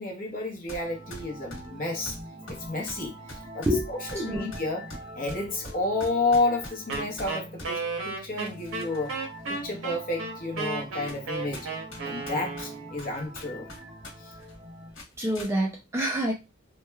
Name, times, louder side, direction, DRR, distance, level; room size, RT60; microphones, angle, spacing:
voice 1, 0.0-2.2 2.5-9.2 9.5-11.7 12.0-13.7 14.2-14.3, left 2 dB, 40° left, 0.8 m, -31 dB
sound 1, 0.7-0.8 1.1-7.7 8.4-9.1 9.5-9.6 10.4-10.5 11.1-11.3 11.5-14.1 14.4-14.6 14.9-15.5, left 1 dB, 75° left, 1.2 m, -43 dB
sound 2, 0.8-15.0, equal, 60° right, 0.9 m, -45 dB
voice 2, 4.2-4.5 15.2-16.3, equal, 15° right, 0.3 m, -27 dB
Wind instrument woodwind instrument, 6.9-13.0, right 4 dB, 90° right, 0.8 m, -34 dB
3.0 x 2.2 x 2.2 m
head